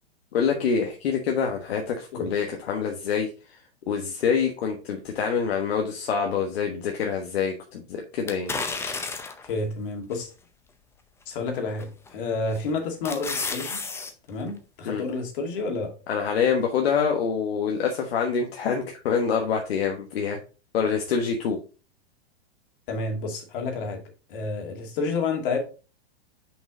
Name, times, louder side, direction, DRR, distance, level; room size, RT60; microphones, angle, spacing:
voice 1, 0.3-3.3 3.9-8.5 14.8-15.0 16.1-20.4 20.7-21.6, left 6 dB, 70° left, 2 dB, 1.3 m, -26 dB
sound 1, 8.3-9.5 10.1-10.2 11.8-12.1 12.6-14.1 14.5-14.6, left 4 dB, 10° left, 0.6 m, -31 dB
voice 2, 9.4-10.3 11.3-13.8 14.3-15.9 22.9-24.0 24.3-25.6, left 3 dB, 55° left, 3 dB, 2.4 m, -30 dB
6.1 x 5.3 x 3.7 m, 0.34 s
hypercardioid pair, 130°, 32 cm